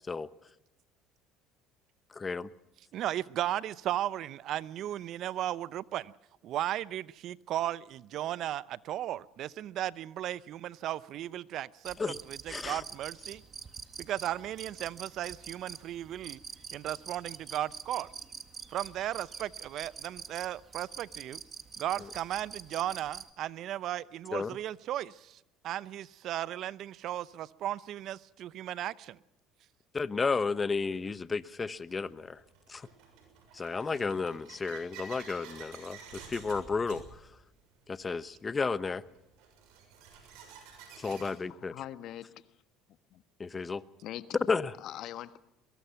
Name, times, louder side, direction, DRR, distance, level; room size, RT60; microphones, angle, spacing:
voice 1, 2.1-2.5 12.0-12.2 12.5-12.8 24.3-24.6 29.9-32.4 32.7-32.9 33.5-37.0 37.9-39.0 41.0-41.7 43.4-43.8 44.5-44.7, left 4 dB, 25° left, 1.1 m, -32 dB
voice 2, 2.9-6.1 6.4-13.4 14.0-16.4 16.7-18.1 18.7-21.4 21.8-29.2, right 12 dB, 60° right, 0.8 m, -36 dB
sound 1, 11.8-23.3, right 6 dB, 35° right, 1.8 m, -46 dB
sound 2, 30.9-31.0 31.9-41.3, right 6 dB, 75° right, 6.9 m, -51 dB
voice 3, 41.5-42.5 43.1-43.2 44.0-44.4 44.8-45.4, left 12 dB, 60° left, 1.3 m, -42 dB
22.5 x 22.0 x 5.8 m
supercardioid pair, 85°, 0 cm